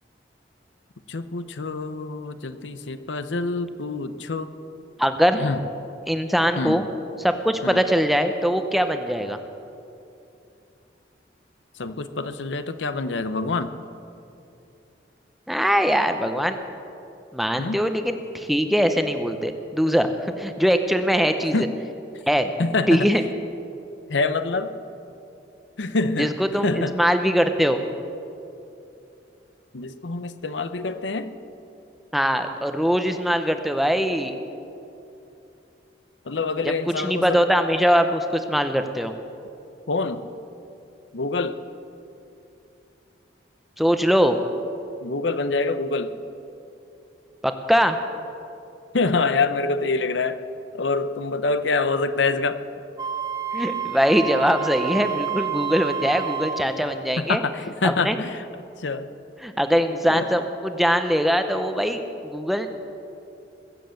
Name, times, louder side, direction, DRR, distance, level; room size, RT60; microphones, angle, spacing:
voice 1, 1.1-4.5 5.3-5.6 6.5-6.8 7.6-7.8 11.8-13.7 17.6-17.8 21.5-21.7 22.6-23.1 24.1-24.7 25.8-26.3 26.6-27.0 29.7-31.3 36.3-37.4 39.9-40.2 41.1-41.6 45.0-46.1 48.9-50.4 50.7-52.6 57.2-58.4 58.8-59.1 60.1-60.3, left 3 dB, 85° left, 11 dB, 0.7 m, -26 dB
voice 2, 5.0-5.4 6.1-6.9 7.2-9.4 15.5-16.6 17.3-21.7 22.3-22.5 22.9-23.2 26.2-27.8 32.1-34.3 36.6-39.1 43.8-44.4 47.4-48.0 53.5-57.4 57.8-58.2 59.4-62.7, equal, ahead, 7 dB, 0.7 m, -22 dB
Wind instrument woodwind instrument, 53.0-56.7, right 8 dB, 25° right, 1.0 m, -29 dB
22.0 x 7.7 x 7.7 m, 2.7 s
head